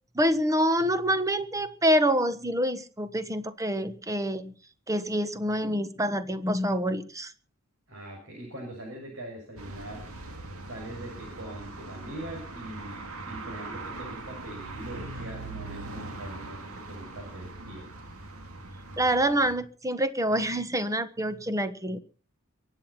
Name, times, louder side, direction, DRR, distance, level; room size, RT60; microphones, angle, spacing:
voice 1, 0.1-4.5 4.9-7.3 19.0-22.0, equal, 15° right, 11 dB, 1.3 m, -26 dB
voice 2, 7.9-10.1 10.7-17.9, right 1 dB, 65° right, 0 dB, 7.2 m, -42 dB
sound 1, 9.6-19.5, right 2 dB, 80° right, 2.3 m, -41 dB
23.5 x 9.2 x 5.8 m, 0.39 s
head